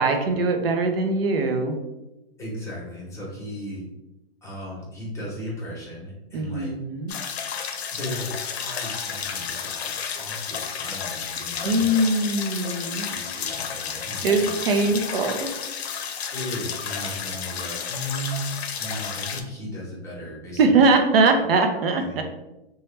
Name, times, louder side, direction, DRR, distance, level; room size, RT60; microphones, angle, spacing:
voice 1, 0.0-1.8 6.3-7.2 11.6-13.1 14.2-15.5 20.6-22.2, right 3 dB, 65° right, 5 dB, 0.6 m, -21 dB
voice 2, 2.4-3.8 4.4-6.7 7.9-12.0 12.8-14.5 14.8-14.9 16.3-18.4 18.8-20.9 21.3-21.4 22.0-22.2, equal, 10° left, -6 dB, 0.9 m, -36 dB
sound 1, 7.1-19.4, left 7 dB, 90° left, 0.5 m, -32 dB
3.0 x 2.3 x 3.2 m, 0.95 s
hypercardioid pair, 140°, 31 cm